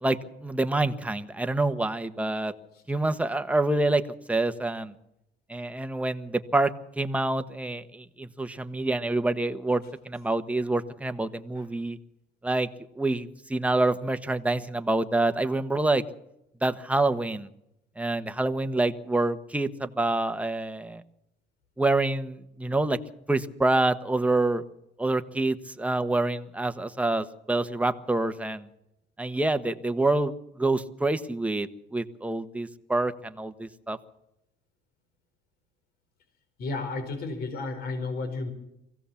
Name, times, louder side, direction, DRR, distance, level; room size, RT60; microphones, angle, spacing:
voice 1, 0.0-2.5 2.9-4.0 4.3-4.9 5.5-12.0 12.4-12.7 13.0-16.0 16.6-17.5 18.0-21.0 21.8-23.0 23.3-24.6 25.0-28.7 29.2-34.0, right 2 dB, 10° right, 8 dB, 1.3 m, -27 dB
voice 2, 36.6-38.5, left 3 dB, 65° left, 7 dB, 4.8 m, -32 dB
24.5 x 16.5 x 7.2 m, 0.83 s
cardioid pair, 110°, 17 cm